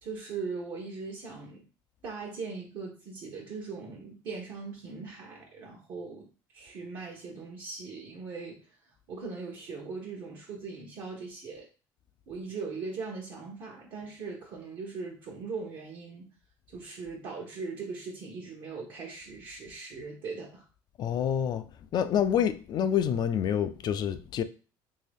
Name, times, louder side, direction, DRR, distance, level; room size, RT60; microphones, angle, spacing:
voice 1, 0.0-1.7 2.0-11.7 12.3-16.3 16.7-20.7, right 4 dB, 65° right, 0.8 m, -40 dB
voice 2, 21.0-21.6 21.9-24.4, left 9 dB, 50° left, 0.4 m, -27 dB
3.0 x 2.7 x 3.4 m
supercardioid pair, 95°, 9 cm